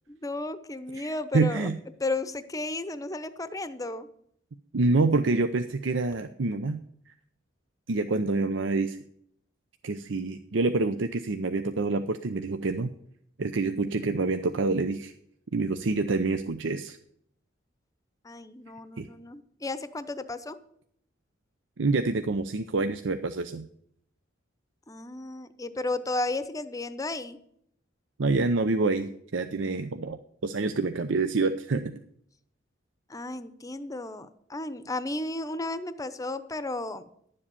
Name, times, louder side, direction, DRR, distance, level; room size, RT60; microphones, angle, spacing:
voice 1, 0.1-1.7 2.0-4.1 18.2-20.6 24.9-27.4 33.1-37.1, left 2 dB, 20° left, 13 dB, 0.7 m, -33 dB
voice 2, 0.9-1.7 4.7-6.8 7.9-9.0 9.8-12.9 13.4-15.1 15.5-17.0 19.0-19.1 21.8-23.7 28.2-32.0, right 3 dB, 75° right, 9 dB, 0.6 m, -27 dB
11.0 x 7.6 x 6.9 m, 0.69 s
head